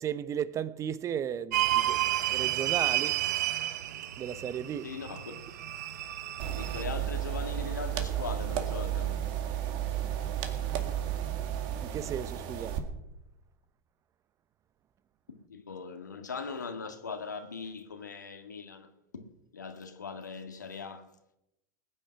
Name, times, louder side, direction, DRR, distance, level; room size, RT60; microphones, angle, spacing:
voice 1, 0.0-3.2 4.2-4.9 11.8-12.8, right 9 dB, 35° right, 0.9 m, -35 dB
sound 1, 1.5-6.8, right 14 dB, 70° right, 1.0 m, -31 dB
voice 2, 4.8-5.3 6.5-9.2 15.3-21.1, left 5 dB, 90° left, 1.8 m, -40 dB
sound 2, 6.4-12.8, right 10 dB, 50° right, 2.1 m, -33 dB
20.0 x 9.1 x 5.8 m
hypercardioid pair, 90°, 9 cm